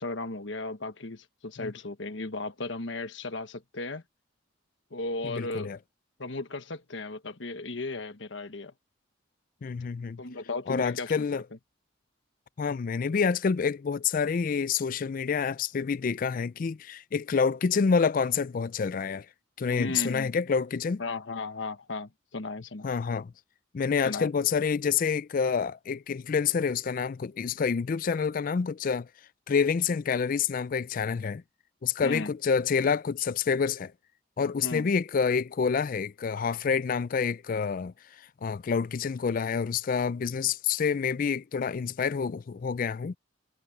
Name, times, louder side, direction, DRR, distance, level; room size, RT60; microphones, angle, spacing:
voice 1, 0.0-4.0 4.9-5.7 6.2-8.7 10.2-11.3 19.7-20.3 21.0-22.9 24.0-24.3 32.0-32.3 34.6-34.9, left 2 dB, 75° left, 1.3 m, -35 dB
voice 2, 5.2-5.8 9.6-10.2 10.7-11.4 12.6-19.3 19.6-21.0 22.8-23.3 23.7-29.1 29.5-31.4 31.8-33.9 34.4-37.9 38.4-43.2, left 6 dB, 45° left, 0.4 m, -28 dB
head